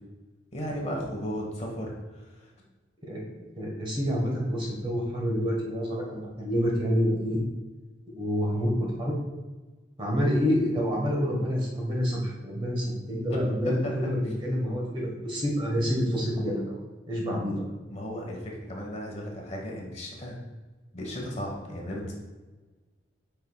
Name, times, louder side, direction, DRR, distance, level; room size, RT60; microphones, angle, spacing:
voice 1, 0.5-1.9 2.4-2.5 13.6-14.1 17.9-20.4 20.9-22.2, equal, 35° left, -2 dB, 1.2 m, -35 dB
voice 2, 3.0-7.4 8.1-9.1 10.0-16.8 17.1-17.6, equal, 25° right, -2 dB, 1.2 m, -28 dB
9.1 x 4.5 x 2.3 m, 1.3 s
head